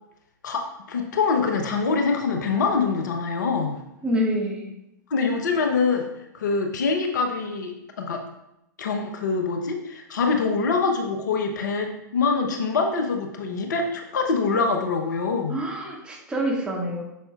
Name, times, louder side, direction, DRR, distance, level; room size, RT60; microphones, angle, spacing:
voice 1, 0.4-3.8 5.1-6.1 6.3-8.2 8.8-15.6, left 4 dB, 65° left, 4 dB, 1.0 m, -24 dB
voice 2, 4.0-4.7 15.5-17.0, equal, 10° right, -2 dB, 1.9 m, -26 dB
8.8 x 6.6 x 2.4 m, 0.87 s
figure-of-eight pair, 100°, 11 cm